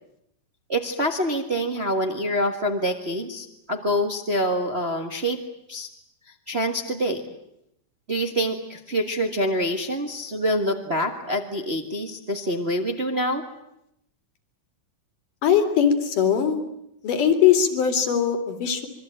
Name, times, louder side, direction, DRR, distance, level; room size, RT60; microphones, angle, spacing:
voice 1, 0.7-5.4 5.7-5.9 6.5-7.2 8.1-13.4, equal, 40° right, 4 dB, 0.8 m, -26 dB
voice 2, 15.4-16.6 17.0-18.9, left 8 dB, 65° left, 8 dB, 4.0 m, -20 dB
26.0 x 23.0 x 8.9 m, 0.80 s
omnidirectional pair, 4.1 m